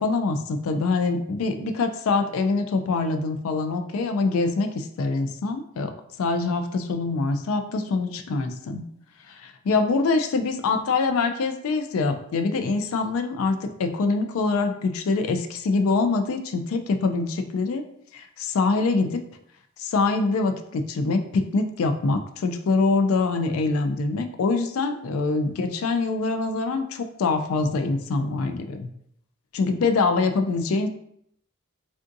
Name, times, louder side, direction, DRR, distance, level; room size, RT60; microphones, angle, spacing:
voice 1, 0.0-8.8 9.3-17.8 18.1-19.2 19.8-28.9 29.5-30.9, left 3 dB, 80° left, 7 dB, 0.3 m, -24 dB
3.5 x 2.5 x 2.5 m, 0.70 s
head